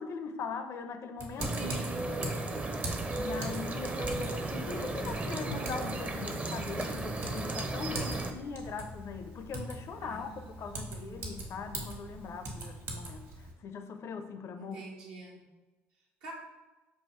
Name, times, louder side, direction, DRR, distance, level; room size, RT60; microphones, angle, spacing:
voice 1, 0.0-1.7 2.2-2.4 3.2-13.2 13.6-14.8, left 5 dB, 50° left, 8 dB, 0.5 m, -40 dB
Typing, 1.2-13.5, right 1 dB, 55° right, 1.2 m, -42 dB
sound 1, 1.4-8.3, right 2 dB, 25° right, 0.5 m, -35 dB
voice 2, 1.5-2.0 10.0-11.7 14.6-15.4 16.2-16.3, right 4 dB, 80° right, -2 dB, 1.0 m, -46 dB
sound 2, 2.4-7.6, left 3 dB, 80° left, 0.9 m, -51 dB
5.5 x 2.5 x 3.1 m, 1.2 s
hypercardioid pair, 65°, 6 cm